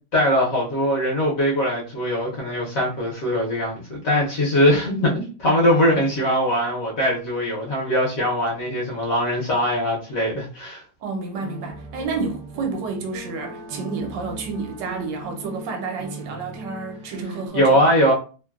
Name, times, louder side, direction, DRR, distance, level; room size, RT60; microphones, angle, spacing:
voice 1, 0.1-10.8 17.5-18.1, equal, 60° left, 1.0 m, -21 dB
voice 2, 11.0-17.8, right 4 dB, 80° right, 1.3 m, -30 dB
sound 1, 11.3-17.5, right 3 dB, 40° right, 0.7 m, -38 dB
3.0 x 2.2 x 2.3 m
omnidirectional pair, 1.9 m